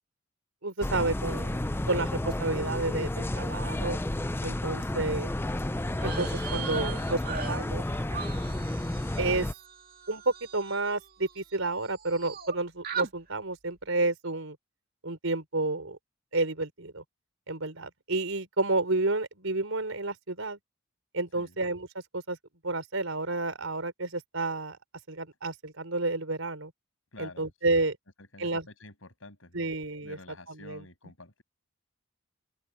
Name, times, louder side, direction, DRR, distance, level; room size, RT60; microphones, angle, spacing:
voice 1, 0.6-1.6 1.9-4.0 4.4-5.3 6.0-7.8 9.2-9.5 10.1-14.6 15.0-16.0 16.3-17.0 17.5-20.6 21.1-21.9 22.1-22.4 22.6-24.8 25.1-26.7 27.2-28.0 28.4-28.7 29.5-30.2 30.6-30.8, right 2 dB, 85° right, 4.3 m, -30 dB
sound 1, 0.8-9.5, left 1 dB, 10° left, 0.5 m, -31 dB
sound 2, 5.9-11.6 11.8-12.5 12.8-13.1, right 6 dB, 45° right, 2.4 m, -39 dB
voice 2, 27.1-27.5 28.2-29.7 30.0-31.4, left 2 dB, 80° left, 7.0 m, -49 dB
open air
head